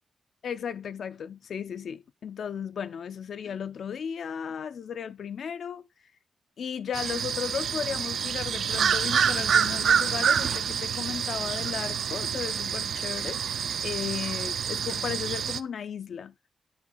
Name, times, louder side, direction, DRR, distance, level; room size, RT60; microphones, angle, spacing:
voice 1, 0.4-5.8 6.6-13.4 13.8-16.3, left 7 dB, 65° left, 0.4 m, -35 dB
sound 1, 6.9-15.6, right 7 dB, 70° right, 0.4 m, -27 dB
10.0 x 6.0 x 3.8 m
wide cardioid pair, 150°, 0 cm